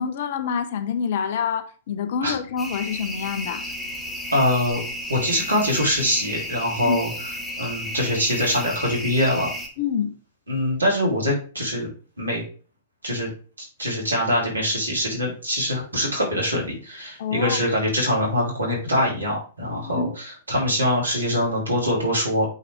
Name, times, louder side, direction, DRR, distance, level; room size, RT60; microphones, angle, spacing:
voice 1, 0.0-3.6 6.9-7.0 9.8-10.1 17.2-17.6 19.7-20.2, left 6 dB, 55° left, 0.9 m, -27 dB
sound 1, 2.6-9.7, left 1 dB, 5° left, 1.7 m, -33 dB
voice 2, 4.3-4.8 5.1-7.1 7.6-9.5 10.5-11.9 12.2-12.4 13.0-13.3 13.8-22.4, equal, 85° right, 3.3 m, -23 dB
8.3 x 4.2 x 3.5 m
figure-of-eight pair, 105°, 0 cm